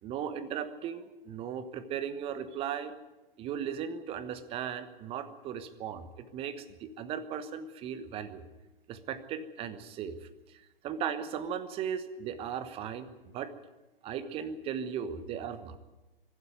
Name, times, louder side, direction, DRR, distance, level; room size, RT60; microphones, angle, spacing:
voice 1, 0.0-2.9 3.4-8.4 8.9-10.2 10.5-13.5 14.0-15.8, right 8 dB, 20° right, 13 dB, 1.2 m, -37 dB
24.5 x 12.5 x 9.4 m, 1.1 s
figure-of-eight pair, 120°, 30 cm